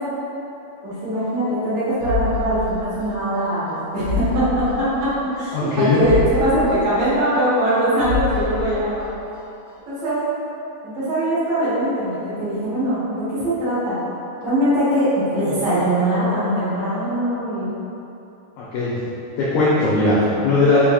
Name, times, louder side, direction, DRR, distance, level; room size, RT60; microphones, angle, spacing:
voice 1, 0.8-5.1 5.3-6.1 6.4-9.1 9.9-10.2 10.8-14.0 14.4-17.7 20.1-20.4, right 1 dB, 75° right, -13 dB, 1.3 m, -22 dB
sound 1, 2.0-3.4 3.7-3.8 4.0-5.4 5.7-5.8 6.0-7.7 8.0-9.4 9.7-9.8, left 5 dB, 60° left, 1.2 m, -27 dB
voice 2, 5.5-6.0 18.6-19.0 19.4-20.9, left 2 dB, 85° left, -9 dB, 1.9 m, -18 dB
6.2 x 3.6 x 2.2 m, 2.9 s
omnidirectional pair, 4.7 m